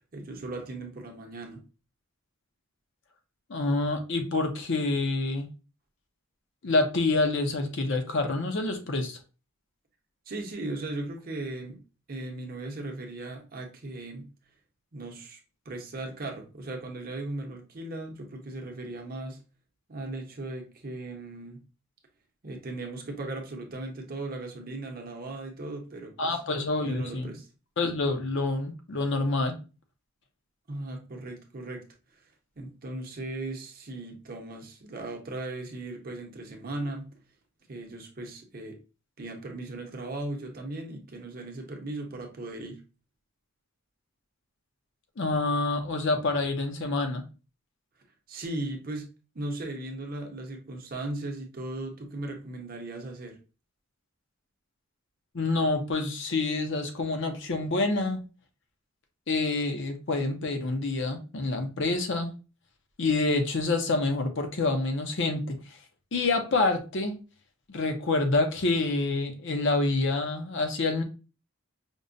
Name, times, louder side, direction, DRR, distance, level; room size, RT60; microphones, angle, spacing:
voice 1, 0.1-1.6 10.3-11.8 12.1-14.3 14.9-15.4 15.7-19.4 19.9-21.6 22.4-26.4 26.8-27.5 30.7-31.8 32.6-37.1 37.7-38.8 39.2-42.8 48.3-49.1 49.3-53.4, right 2 dB, 40° right, 2 dB, 0.7 m, -37 dB
voice 2, 3.5-5.5 6.6-9.2 26.2-27.3 27.8-29.5 45.2-47.2 55.3-58.2 59.3-62.3 63.0-65.6 66.1-67.2 67.7-71.0, left 3 dB, 55° left, 5 dB, 0.6 m, -27 dB
5.1 x 2.1 x 2.5 m, 0.33 s
head